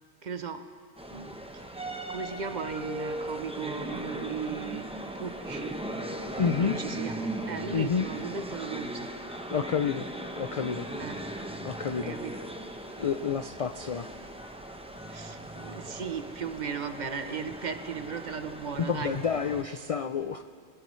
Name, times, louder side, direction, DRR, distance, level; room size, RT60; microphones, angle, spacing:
voice 1, 0.2-0.7 1.1-1.7 2.1-4.9 5.2-5.8 6.6-9.1 11.0-11.2 12.0-12.3 15.1-19.1, right 6 dB, 45° right, 8 dB, 0.8 m, -36 dB
sound 1, 1.0-19.6, right 1 dB, 5° right, 0.7 m, -38 dB
voice 2, 6.4-6.8 7.7-8.1 9.5-10.1 10.4-10.9 11.6-12.2 13.0-14.1 18.8-20.4, left 6 dB, 60° left, 8 dB, 0.3 m, -29 dB
25.5 x 16.5 x 3.1 m, 2.1 s
omnidirectional pair, 1.1 m